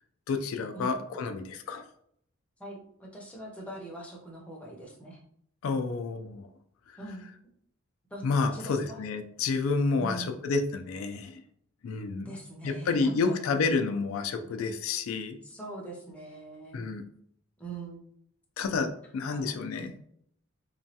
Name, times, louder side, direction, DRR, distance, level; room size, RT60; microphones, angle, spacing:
voice 1, 0.3-1.8 5.6-6.5 8.2-11.4 11.8-12.4 12.6-15.4 16.7-17.0 18.6-19.9, left 4 dB, 85° left, 7 dB, 0.3 m, -29 dB
voice 2, 2.6-5.2 7.0-7.3 8.1-8.2 8.5-9.0 10.0-10.3 12.2-13.9 15.4-16.8 17.6-18.0 19.3-19.9, right 1 dB, 5° left, -2 dB, 0.6 m, -43 dB
3.0 x 2.2 x 2.7 m, 0.67 s
head